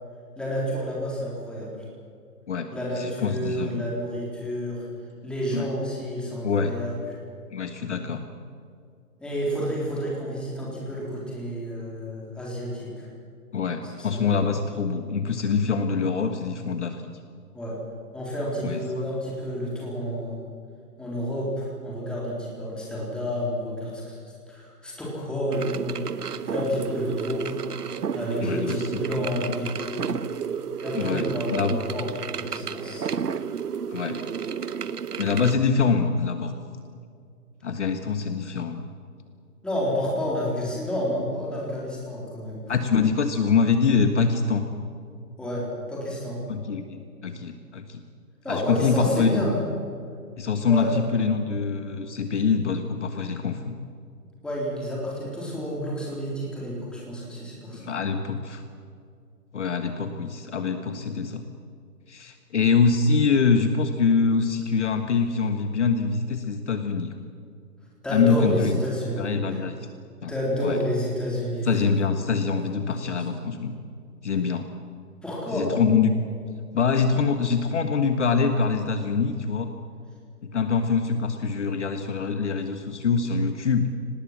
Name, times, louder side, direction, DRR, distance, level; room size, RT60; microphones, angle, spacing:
voice 1, 0.4-1.7 2.7-4.9 5.2-7.0 9.2-13.1 14.0-14.4 17.5-17.8 18.1-20.4 21.0-24.2 24.5-27.6 28.1-30.0 30.8-33.1 39.6-42.6 45.4-46.4 48.4-49.6 50.7-50.9 54.4-57.9 68.0-69.6 70.3-71.9 72.6-73.3 75.2-75.7, equal, ahead, -5 dB, 3.8 m, -30 dB
voice 2, 3.0-3.8 5.5-5.7 6.4-6.7 7.5-8.2 13.5-17.0 18.6-18.8 28.4-28.9 30.9-31.8 33.9-34.2 35.2-36.5 37.6-38.8 42.7-44.6 46.5-48.0 48.5-49.5 50.4-53.8 57.8-58.6 59.5-61.4 62.1-67.1 68.1-68.8 69.2-69.7 70.2-70.3 70.6-70.8 71.6-73.7 74.2-74.6 75.5-76.1 76.7-79.7 80.5-83.9, left 5 dB, 45° left, 7 dB, 1.6 m, -24 dB
sound 1, 25.5-35.6, right 7 dB, 75° right, 1.2 m, -31 dB
25.0 x 19.5 x 7.6 m, 2.3 s
hypercardioid pair, 160°, 47 cm